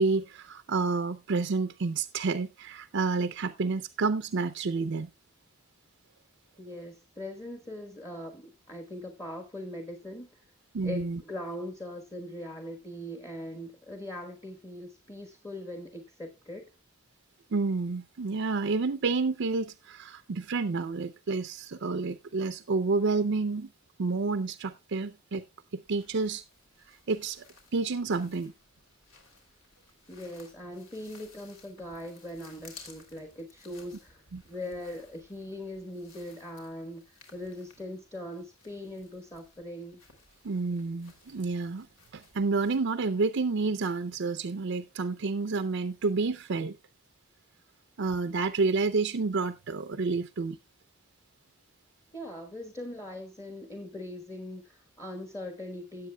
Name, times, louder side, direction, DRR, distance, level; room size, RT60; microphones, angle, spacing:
voice 1, 0.0-5.1 10.7-11.2 17.5-23.7 24.0-25.4 25.9-26.4 26.9-27.4 27.7-28.5 34.3-34.4 40.4-41.9 42.1-46.8 48.0-50.6, right 4 dB, 60° right, 0.5 m, -29 dB
voice 2, 6.6-10.4 10.8-16.7 30.1-40.0 52.1-56.1, left 1 dB, 15° left, 1.2 m, -41 dB
sound 1, 25.9-42.8, left 4 dB, 75° left, 2.9 m, -57 dB
17.5 x 7.8 x 2.2 m
head